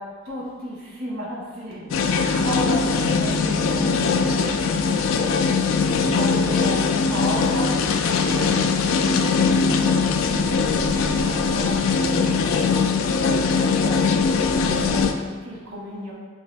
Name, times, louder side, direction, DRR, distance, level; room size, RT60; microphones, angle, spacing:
voice 1, 0.3-8.0 8.3-16.1, equal, 85° right, -4 dB, 1.2 m, -35 dB
sound 1, 1.9-15.1, left 5 dB, 75° left, 0.3 m, -21 dB
4.8 x 2.6 x 3.3 m, 1.5 s
head